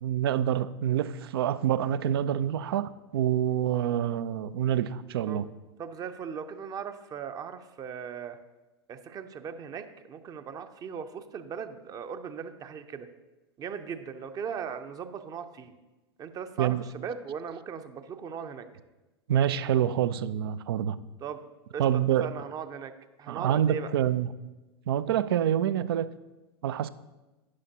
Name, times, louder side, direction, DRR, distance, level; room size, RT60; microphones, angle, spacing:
voice 1, 0.0-5.4 16.6-16.8 19.3-21.0 21.8-22.3 23.3-24.3 24.9-26.1 26.6-26.9, right 10 dB, 60° right, 16 dB, 0.5 m, -26 dB
voice 2, 5.8-8.4 8.9-13.1 13.6-15.7 16.2-18.7 21.2-21.4 21.7-21.8 22.2-22.9 23.2-23.9, right 7 dB, 25° right, 9 dB, 0.7 m, -38 dB
11.5 x 9.8 x 2.8 m, 1.1 s
figure-of-eight pair, 90°, 14 cm